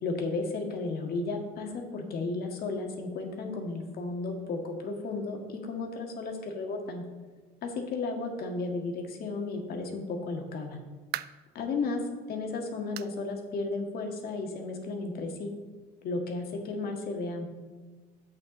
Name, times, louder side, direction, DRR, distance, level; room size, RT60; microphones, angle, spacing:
voice 1, 0.0-7.0 7.6-10.8 11.5-12.0 12.3-15.5 16.0-17.5, left 3 dB, 65° left, 2 dB, 1.8 m, -34 dB
sound 1, 11.1-11.6 12.1-12.2 13.0-13.2 13.5-13.6 14.2-14.3 15.3-15.4, right 14 dB, 70° right, 0.4 m, -40 dB
10.0 x 8.2 x 3.8 m, 1.3 s
cardioid pair, 110°, 17 cm